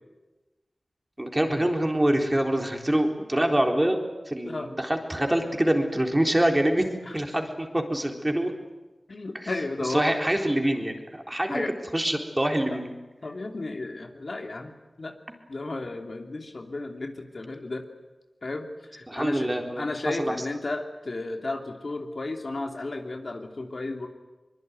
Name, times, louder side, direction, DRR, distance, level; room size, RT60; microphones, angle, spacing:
voice 1, 1.2-4.0 4.3-6.8 7.1-8.5 9.3-9.5 9.8-11.6 11.9-12.9 19.1-20.4, right 1 dB, 20° right, 3 dB, 3.9 m, -25 dB
voice 2, 9.1-10.2 11.5-11.7 13.2-15.1 15.5-17.8 18.4-19.5 19.8-24.1, left 2 dB, 65° left, 3 dB, 3.0 m, -33 dB
23.5 x 22.0 x 9.6 m, 1.2 s
wide cardioid pair, 45°, 0 cm